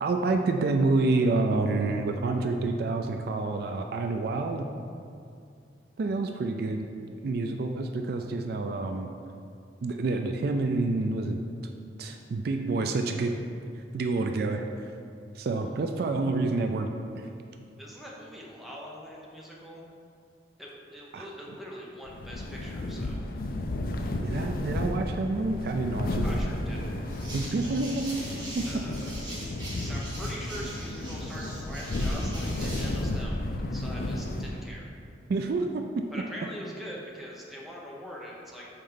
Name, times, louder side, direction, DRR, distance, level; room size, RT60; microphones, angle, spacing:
voice 1, 0.0-4.7 6.0-6.8 7.2-9.1 9.8-11.4 12.0-13.4 13.9-14.9 15.3-17.3 21.1-21.3 24.2-26.2 27.3-28.1 28.6-28.7 35.3-36.0, right 3 dB, 55° right, 5 dB, 0.3 m, -28 dB
voice 2, 17.8-19.8 20.6-23.2 26.2-26.9 28.7-29.2 29.8-33.4 33.7-34.9 36.1-38.7, equal, ahead, -4 dB, 0.8 m, -43 dB
sound 1, 22.1-34.8, left 1 dB, 50° left, 0.4 m, -33 dB
sound 2, 27.1-33.0, right 1 dB, 25° right, 1.4 m, -42 dB
5.8 x 4.2 x 5.1 m, 2.4 s
head